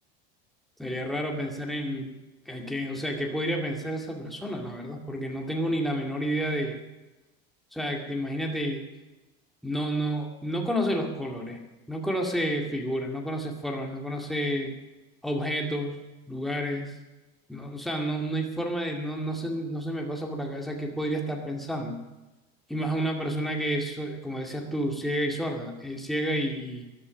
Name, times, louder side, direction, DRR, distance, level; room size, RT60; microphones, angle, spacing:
voice 1, 0.8-2.1 2.5-6.8 7.7-8.8 9.6-11.6 11.9-14.7 15.2-17.0 17.5-22.0 22.7-26.9, equal, ahead, 0 dB, 2.2 m, -30 dB
14.5 x 11.5 x 6.4 m, 1.1 s
supercardioid pair, 115°, 31 cm